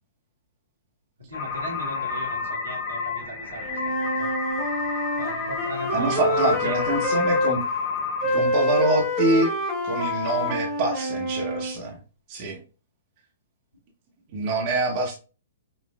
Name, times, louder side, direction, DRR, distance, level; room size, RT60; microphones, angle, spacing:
voice 1, 1.2-4.3 5.2-6.8, equal, 75° right, -2 dB, 1.4 m, -36 dB
sound 1, 1.3-8.4, left 5 dB, 45° left, 0.8 m, -30 dB
Wind instrument woodwind instrument, 3.6-7.5 8.2-11.7, left 1 dB, 5° right, 1.0 m, -26 dB
voice 2, 5.9-7.6 8.2-9.5 9.8-12.0 12.3-12.6 14.3-15.2, right 2 dB, 40° right, -1 dB, 1.1 m, -25 dB
5.2 x 2.4 x 2.4 m, 0.35 s
figure-of-eight pair, 115°, 0 cm